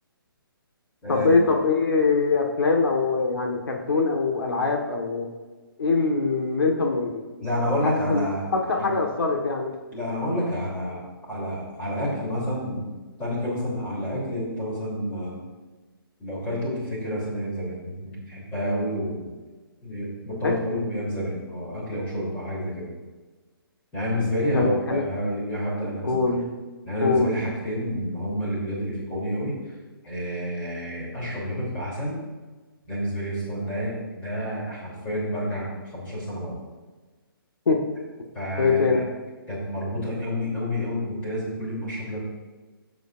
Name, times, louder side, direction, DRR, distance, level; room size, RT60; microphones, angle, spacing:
voice 1, 1.1-5.3 5.8-7.2 7.8-9.7 20.4-20.8 24.5-25.1 26.0-26.5 27.0-27.3 37.7-37.8 38.6-39.0, left 4 dB, 70° left, 1 dB, 1.5 m, -23 dB
voice 2, 7.4-8.5 8.8-8.9 9.9-11.0 11.3-12.8 13.2-15.4 16.2-19.3 19.8-22.9 23.9-26.3 26.8-29.6 30.1-32.2 32.9-36.6 38.3-39.0 39.5-42.2, equal, 10° left, -7 dB, 3.1 m, -29 dB
13.5 x 8.1 x 2.6 m, 1.3 s
hypercardioid pair, 170°, 12 cm